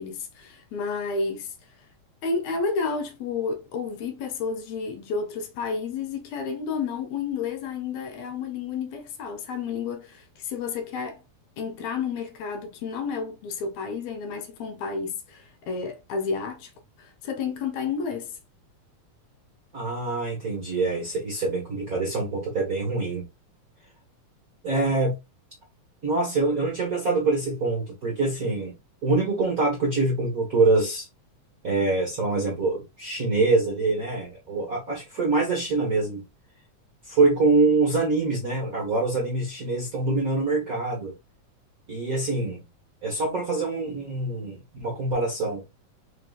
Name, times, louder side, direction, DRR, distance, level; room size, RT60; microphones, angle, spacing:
voice 1, 0.0-1.5 2.2-11.2 11.6-16.7 17.0-18.4, left 5 dB, 75° left, 1.9 m, -31 dB
voice 2, 19.7-23.2 24.6-25.1 26.0-28.7 29.0-31.1 31.6-36.2 37.0-41.1 41.9-42.6 43.0-45.6, right 3 dB, 45° right, 1.2 m, -25 dB
4.5 x 3.8 x 2.4 m
omnidirectional pair, 3.4 m